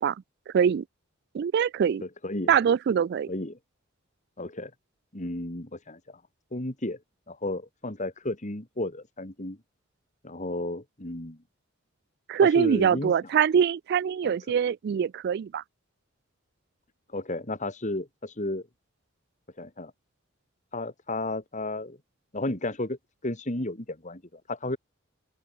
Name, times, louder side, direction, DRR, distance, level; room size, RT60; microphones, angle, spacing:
voice 1, 0.5-0.8 1.3-2.0 2.5-3.3 12.3-15.6, right 7 dB, 55° right, 0.3 m, -23 dB
voice 2, 2.0-2.5 3.3-3.6 4.4-4.7 5.1-6.2 6.5-7.0 7.3-9.6 10.2-11.4 12.4-13.1 14.2-14.3 17.1-18.7 19.6-19.9 20.7-22.0 22.3-23.0 23.2-24.8, left 2 dB, 40° left, 2.8 m, -33 dB
open air
head